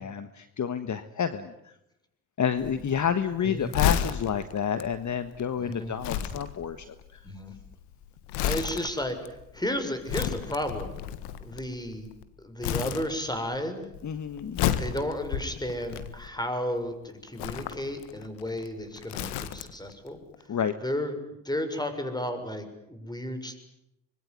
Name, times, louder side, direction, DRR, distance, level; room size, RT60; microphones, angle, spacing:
voice 1, 0.0-1.5 2.4-6.9 14.0-14.6 20.5-20.7, left 8 dB, 45° left, 11 dB, 1.5 m, -29 dB
Crumpling crinkling, 2.6-12.2 12.6-13.6 13.8-16.6 17.3-19.9 20.2-20.3, left 10 dB, 85° left, 1.7 m, -32 dB
voice 2, 5.6-6.0 7.2-7.6 8.4-9.2 9.5-10.9 11.4-12.1 12.4-13.9 14.8-20.2 20.8-21.2 21.4-23.6, left 1 dB, 10° left, 8 dB, 6.8 m, -33 dB
25.5 x 22.5 x 9.6 m, 0.86 s
hypercardioid pair, 55°, 40 cm